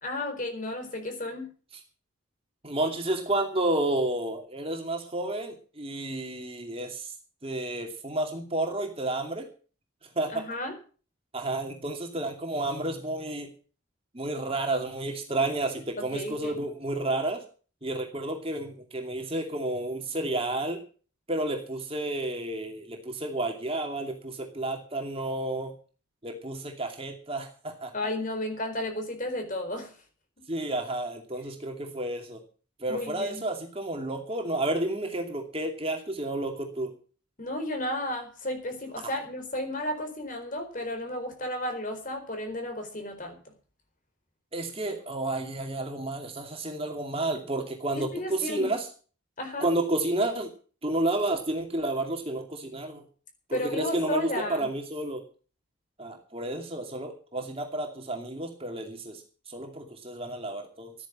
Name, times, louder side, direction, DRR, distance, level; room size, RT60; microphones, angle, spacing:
voice 1, 0.0-1.5 10.3-10.8 16.1-16.5 27.9-30.0 32.9-33.4 37.4-43.5 48.0-48.8 49.4-49.7 53.5-54.7, left 1 dB, 40° left, 5 dB, 4.4 m, -33 dB
voice 2, 2.6-7.1 7.4-9.5 10.2-10.5 11.3-13.5 14.1-17.4 17.8-20.8 21.3-25.7 26.2-27.9 30.5-32.4 32.8-36.9 44.5-48.9 49.6-50.5 50.8-53.0 53.5-55.2 56.0-60.9, right 2 dB, 25° right, 3 dB, 2.6 m, -31 dB
13.5 x 9.8 x 7.4 m, 0.39 s
head